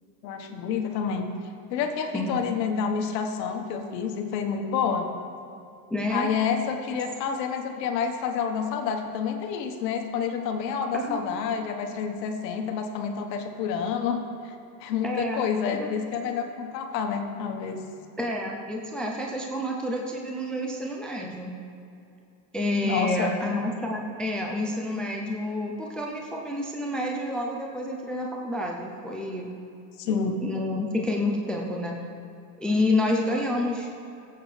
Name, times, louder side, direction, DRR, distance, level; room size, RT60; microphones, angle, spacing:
voice 1, 0.2-1.3 1.7-5.1 6.1-14.5 14.8-17.8 22.8-23.3 30.0-30.4, left 6 dB, 80° left, 4 dB, 1.3 m, -28 dB
voice 2, 2.1-2.4 5.9-6.3 10.9-11.2 15.0-15.9 18.2-21.5 22.5-29.5 30.1-32.0 32.6-33.9, left 1 dB, ahead, 0 dB, 0.4 m, -29 dB
17.0 x 8.1 x 3.3 m, 2.6 s
supercardioid pair, 135°, 49 cm